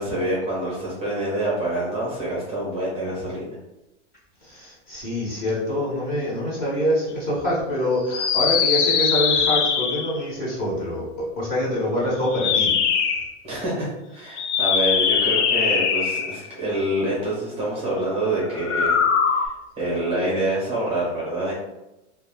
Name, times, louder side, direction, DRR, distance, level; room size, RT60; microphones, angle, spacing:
voice 1, 0.0-3.6 13.4-19.0 19.3-21.5, right 1 dB, 15° right, -7 dB, 0.7 m, -26 dB
voice 2, 4.4-12.7, left 1 dB, 25° left, -6 dB, 0.9 m, -25 dB
sound 1, 8.1-10.2 12.2-13.3 14.3-16.5 18.6-19.5, left 6 dB, 75° left, 0.5 m, -21 dB
2.3 x 2.2 x 3.3 m, 0.96 s
supercardioid pair, 155°, 36 cm